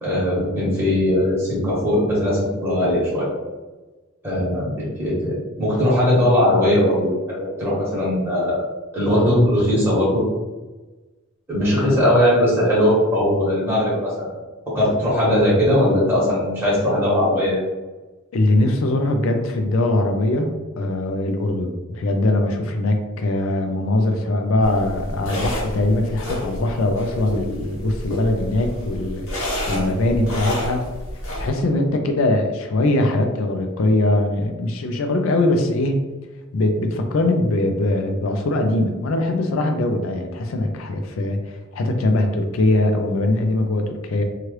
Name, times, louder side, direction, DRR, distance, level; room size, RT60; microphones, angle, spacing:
voice 1, 0.0-3.3 4.2-8.6 8.9-10.2 11.5-14.4 14.7-17.6, left 1 dB, 10° right, -8 dB, 1.1 m, -19 dB
voice 2, 18.3-20.5 20.8-30.9 31.4-36.0 36.5-44.2, left 2 dB, 75° left, 5 dB, 0.4 m, -21 dB
sound 1, 24.6-31.5, left 1 dB, 90° left, 0.9 m, -29 dB
2.9 x 2.4 x 3.1 m, 1.2 s
head